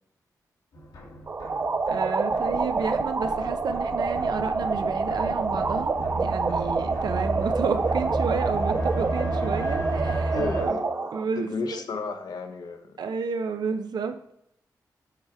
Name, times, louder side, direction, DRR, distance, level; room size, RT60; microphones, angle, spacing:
sound 1, 0.7-10.6, right 1 dB, 85° left, 1.9 m, -33 dB
sound 2, 1.3-11.2, right 4 dB, 35° right, 0.4 m, -27 dB
voice 1, 1.9-10.8 11.1-11.8 13.0-14.3, right 5 dB, 80° right, 8 dB, 0.6 m, -31 dB
voice 2, 10.3-13.0, left 4 dB, 70° left, 6 dB, 0.8 m, -34 dB
7.9 x 3.5 x 4.7 m, 0.76 s
wide cardioid pair, 125°, 7 cm